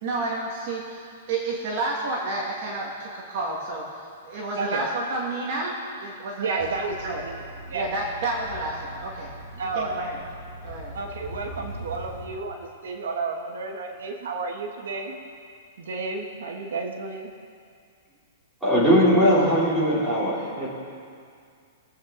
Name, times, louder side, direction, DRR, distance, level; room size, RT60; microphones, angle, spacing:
voice 1, 0.0-7.3 7.7-9.3 9.6-10.2 10.6-10.9, right 2 dB, 35° right, -3 dB, 1.8 m, -30 dB
voice 2, 4.6-4.9 6.4-7.9 9.6-10.0 10.9-15.2 15.8-17.3, right 3 dB, 75° right, 3 dB, 1.4 m, -31 dB
sound 1, 6.6-12.3, equal, 45° left, 2.9 m, -41 dB
voice 3, 18.6-20.7, equal, ahead, -11 dB, 3.5 m, -20 dB
23.0 x 8.2 x 3.9 m, 2.3 s
hypercardioid pair, 175°, 0 cm